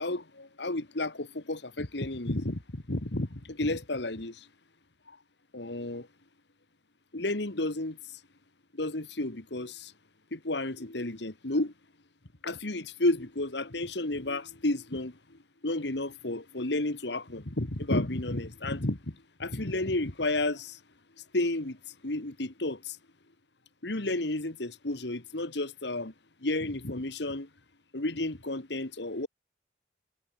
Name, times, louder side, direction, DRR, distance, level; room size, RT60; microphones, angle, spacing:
voice 1, 0.0-4.5 5.1-5.2 5.5-6.1 7.1-8.2 8.7-9.9 10.3-11.7 12.4-20.8 21.2-23.0 23.8-26.1 26.4-27.5 27.9-29.3, left 2 dB, 70° left, 2.0 m, -32 dB
head